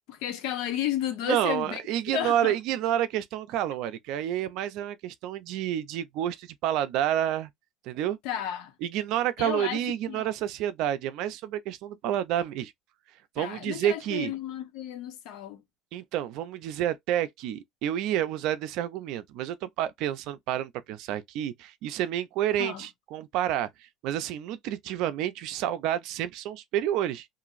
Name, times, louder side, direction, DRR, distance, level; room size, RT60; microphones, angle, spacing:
voice 1, 0.1-1.8 2.1-2.6 8.2-8.7 9.4-9.8 10.1-10.2 13.4-15.6 22.6-22.9, left 11 dB, 75° left, 0.7 m, -32 dB
voice 2, 1.2-7.5 7.8-8.2 8.8-12.7 13.4-14.3 15.9-27.3, right 11 dB, 65° right, 0.5 m, -29 dB
2.9 x 2.6 x 2.4 m
cardioid pair, 145°, 0 cm